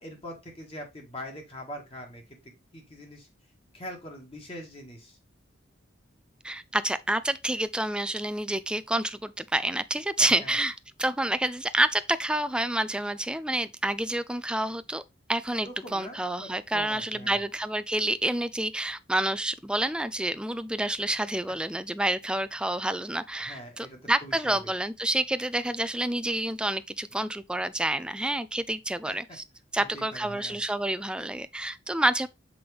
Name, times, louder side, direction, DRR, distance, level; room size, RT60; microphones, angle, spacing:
voice 1, 0.0-3.3 3.7-5.2 10.2-10.5 15.5-17.4 23.5-24.7 29.1-29.2 29.8-30.6, equal, 30° left, 2.0 m, -43 dB
voice 2, 6.4-10.7 11.0-15.0 15.3-29.4 29.7-32.3, right 1 dB, 5° right, 0.3 m, -28 dB
6.1 x 5.0 x 3.4 m
head